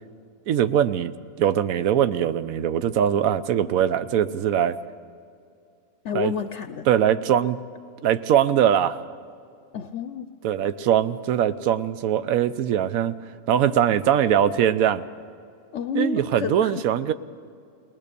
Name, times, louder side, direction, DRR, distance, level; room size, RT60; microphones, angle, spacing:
voice 1, 0.5-4.8 6.1-6.3 6.9-7.6 8.0-9.0 10.4-13.1 13.5-15.0 15.9-17.1, right 10 dB, 80° right, 13 dB, 1.1 m, -21 dB
voice 2, 6.0-6.9 9.7-10.3 15.7-16.8, left 7 dB, 65° left, 9 dB, 0.9 m, -30 dB
21.0 x 19.5 x 6.8 m, 2.4 s
omnidirectional pair, 1.5 m